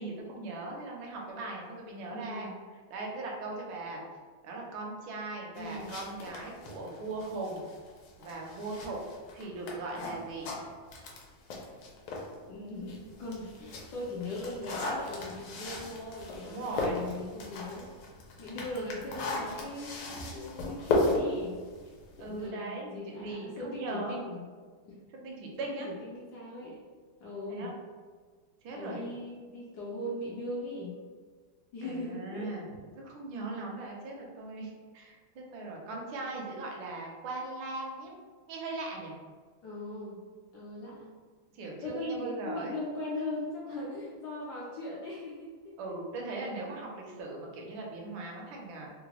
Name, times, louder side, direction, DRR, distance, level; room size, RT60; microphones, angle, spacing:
voice 1, 0.0-2.5 2.9-4.0 4.4-7.7 8.2-9.0 9.3-10.5 16.4-17.0 18.5-18.6 22.2-24.2 25.1-25.9 27.5-27.7 28.6-29.0 31.8-32.7 33.0-38.1 38.5-39.1 41.5-42.7 45.8-48.9, right 2 dB, 75° right, -1 dB, 1.4 m, -39 dB
voice 2, 2.1-2.5 5.5-5.9 12.5-17.9 18.4-21.6 22.2-24.5 24.9-25.0 25.6-26.8 27.2-27.7 28.7-30.9 31.7-32.6 39.6-40.2 40.5-41.1 41.8-45.7, left 1 dB, 70° left, -5 dB, 1.0 m, -39 dB
sound 1, 5.6-12.3 12.8-22.5, left 2 dB, 90° left, 1.5 m, -36 dB
3.7 x 2.1 x 2.9 m, 1.5 s
omnidirectional pair, 2.2 m